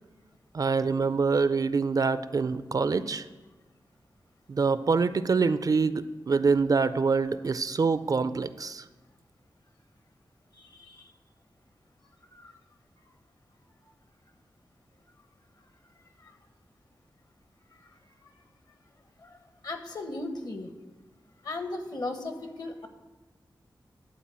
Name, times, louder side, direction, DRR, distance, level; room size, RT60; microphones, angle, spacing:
voice 1, 0.5-3.2 4.5-8.8, right 4 dB, 50° right, 14 dB, 0.4 m, -25 dB
voice 2, 10.6-11.0 12.3-12.5 16.2-16.3 19.2-19.4 19.6-20.7 21.4-22.9, left 2 dB, 55° left, 6 dB, 1.2 m, -37 dB
11.5 x 4.1 x 7.4 m, 1.2 s
wide cardioid pair, 105°, 8 cm